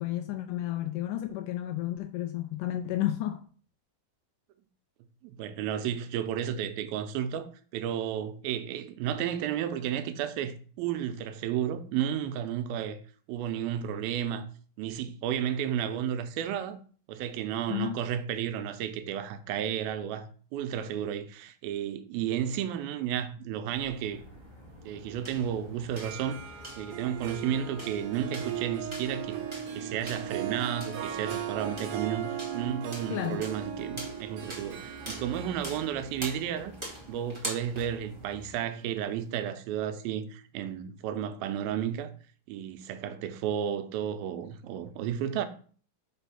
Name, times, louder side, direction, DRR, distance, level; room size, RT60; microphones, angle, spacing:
voice 1, 0.0-3.4 17.7-18.0 33.1-33.4, left 13 dB, 80° left, 1.9 m, -32 dB
voice 2, 5.2-13.0 13.3-14.5 14.8-16.8 17.1-24.2 24.8-26.4 26.8-36.7 37.1-42.1 42.5-45.5, right 9 dB, 90° right, 2.5 m, -32 dB
sound 1, 23.8-38.5, equal, 15° right, 0.9 m, -45 dB
Harp, 25.8-38.7, right 9 dB, 70° right, 2.0 m, -38 dB
5.4 x 4.1 x 5.6 m
omnidirectional pair, 4.1 m